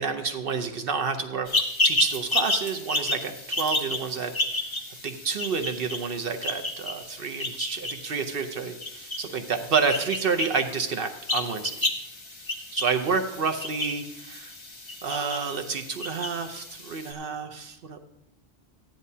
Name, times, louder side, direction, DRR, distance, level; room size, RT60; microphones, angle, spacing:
voice 1, 0.0-1.5 1.8-4.3 5.0-11.9 12.7-14.5 15.0-18.0, right 5 dB, 65° right, 6 dB, 0.9 m, -29 dB
sound 1, 1.5-17.1, left 2 dB, 30° left, 1.1 m, -31 dB
14.5 x 10.5 x 2.7 m, 0.89 s
omnidirectional pair, 1.1 m